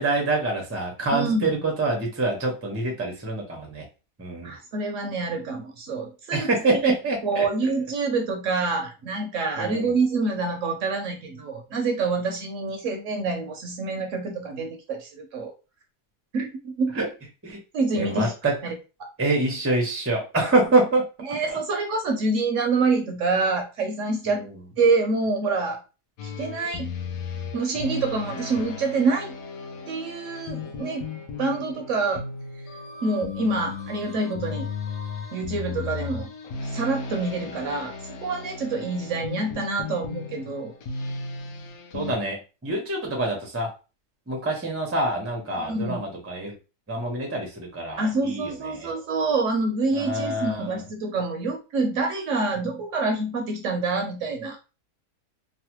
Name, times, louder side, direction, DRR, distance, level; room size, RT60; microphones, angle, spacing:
voice 1, 0.0-3.8 4.2-4.5 6.3-7.4 9.6-9.9 16.9-17.0 17.4-17.6 17.9-18.6 19.2-21.1 21.5-21.6 24.3-24.4 41.9-43.7 44.3-46.5 46.9-48.5 48.8-48.9 49.9-50.8, right 2 dB, 20° right, 1 dB, 0.3 m, -26 dB
voice 2, 1.1-1.6 4.4-6.9 7.2-15.5 16.3-17.1 17.7-18.3 18.6-18.7 21.2-24.5 24.8-25.8 26.2-27.0 27.5-29.3 29.9-31.1 31.4-32.2 33.0-34.7 35.3-36.3 36.6-37.9 38.2-40.7 45.6-46.1 48.0-54.6, right 3 dB, 65° right, 3 dB, 0.8 m, -26 dB
sound 1, 26.2-42.1, left 5 dB, 70° left, 1.0 m, -35 dB
3.1 x 2.1 x 2.9 m, 0.31 s
omnidirectional pair, 1.7 m